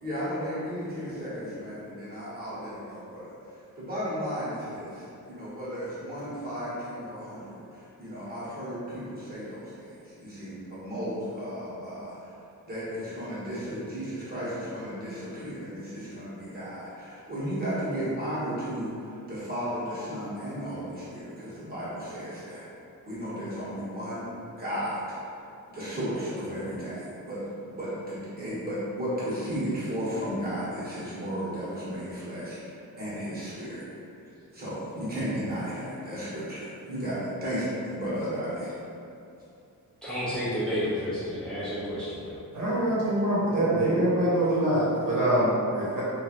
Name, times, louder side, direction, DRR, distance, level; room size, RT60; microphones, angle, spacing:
voice 1, 0.0-3.3 3.8-12.3 12.7-22.6 23.1-24.3 24.6-25.2 25.7-27.4 27.7-33.8 34.5-38.7, equal, 25° right, -11 dB, 1.2 m, -34 dB
voice 2, 40.0-42.4, equal, ahead, -12 dB, 0.8 m, -31 dB
voice 3, 42.5-46.0, right 1 dB, 70° right, -9 dB, 1.0 m, -24 dB
3.0 x 2.5 x 2.9 m, 2.6 s
wide cardioid pair, 145°, 34 cm